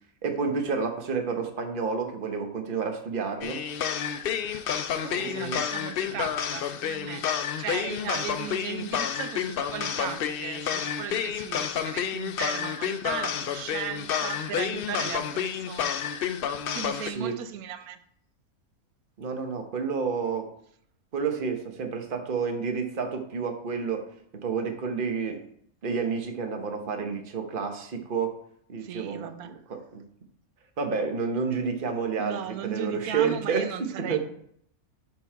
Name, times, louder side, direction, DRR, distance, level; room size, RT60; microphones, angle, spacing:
voice 1, 0.2-3.6 5.1-5.6 6.1-6.2 17.0-17.3 19.2-20.5 21.1-24.0 24.3-25.4 25.8-28.3 28.7-30.0 30.8-33.7 34.0-34.2, right 5 dB, 40° right, 5 dB, 1.0 m, -30 dB
sound 1, 3.4-17.1, left 8 dB, 70° left, 0.5 m, -30 dB
voice 2, 5.0-7.3 7.6-15.9 16.7-18.0 28.8-29.5 32.2-34.2, right 9 dB, 90° right, 11 dB, 1.1 m, -36 dB
11.0 x 3.8 x 4.5 m, 0.68 s
omnidirectional pair, 1.5 m